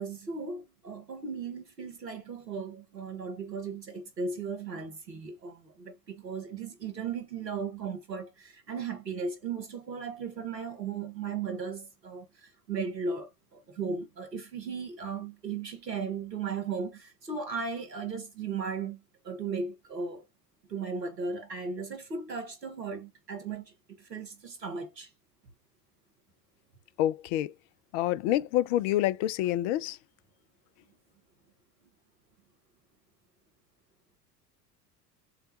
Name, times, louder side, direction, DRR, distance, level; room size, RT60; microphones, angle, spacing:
voice 1, 0.0-20.2 20.7-25.1, right 5 dB, 90° right, 1.2 m, -36 dB
voice 2, 27.0-27.5 27.9-30.0, left 13 dB, 50° left, 0.5 m, -27 dB
6.5 x 2.2 x 2.7 m
figure-of-eight pair, 75°, 48 cm